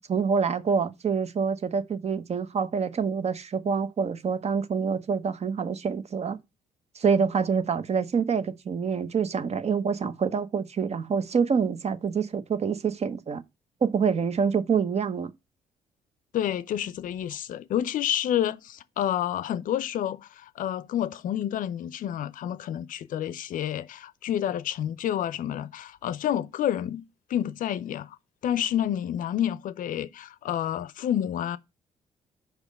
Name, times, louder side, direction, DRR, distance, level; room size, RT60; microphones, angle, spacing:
voice 1, 0.1-6.4 6.9-13.4 13.8-15.3, right 6 dB, 45° right, 0.9 m, -26 dB
voice 2, 16.3-28.2 28.4-31.6, left 10 dB, 60° left, 0.6 m, -29 dB
5.2 x 4.9 x 5.2 m
hypercardioid pair, 50°, 16 cm